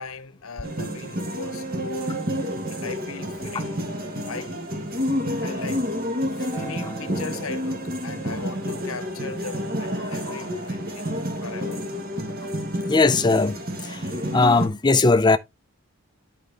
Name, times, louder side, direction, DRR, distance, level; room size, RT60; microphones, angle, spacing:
voice 1, 0.0-2.3 2.7-3.8 4.3-4.6 5.4-5.9 6.5-11.9, left 5 dB, 70° left, 0.9 m, -38 dB
sound 1, 0.6-14.7, equal, 40° right, 1.7 m, -29 dB
Acoustic guitar, 6.5-10.8 11.7-11.8, right 2 dB, 15° right, 2.1 m, -45 dB
voice 2, 12.9-13.6 13.8-14.0 14.3-15.4, left 3 dB, 20° left, 0.5 m, -19 dB
11.0 x 5.0 x 3.3 m
head